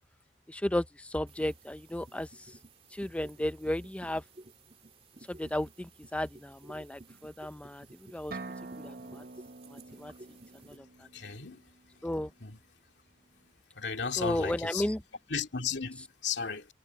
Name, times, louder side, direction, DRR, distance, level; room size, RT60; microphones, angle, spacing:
voice 1, 0.5-2.5 2.9-4.2 5.3-8.4 8.7-9.2 9.7-10.4 10.6-11.1 12.0-12.3 14.2-15.0, left 1 dB, 5° left, 0.5 m, -34 dB
sound 1, 1.3-10.8, right 2 dB, 35° right, 2.3 m, -55 dB
sound 2, 8.3-12.1, right 3 dB, 55° right, 0.9 m, -46 dB
voice 2, 11.1-11.6 12.4-12.6 13.8-14.8 15.3-16.7, left 6 dB, 80° left, 2.4 m, -34 dB
head